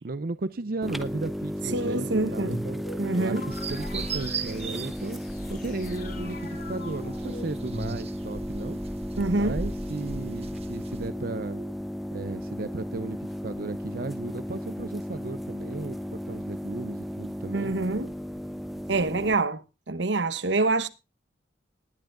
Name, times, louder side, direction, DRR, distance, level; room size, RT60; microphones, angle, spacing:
voice 1, 0.0-5.2 5.5-8.8 9.3-11.6 12.1-17.7, right 3 dB, 55° right, 0.6 m, -35 dB
sound 1, 0.8-19.4, equal, ahead, 0.9 m, -35 dB
voice 2, 1.7-2.6 3.0-3.5 9.2-9.6 17.5-18.1 18.9-20.9, right 2 dB, 80° right, 1.0 m, -26 dB
sound 2, 2.1-8.4, left 2 dB, 60° left, 4.4 m, -42 dB
sound 3, 3.5-11.1, right 3 dB, 35° right, 1.4 m, -38 dB
19.5 x 10.5 x 2.4 m
head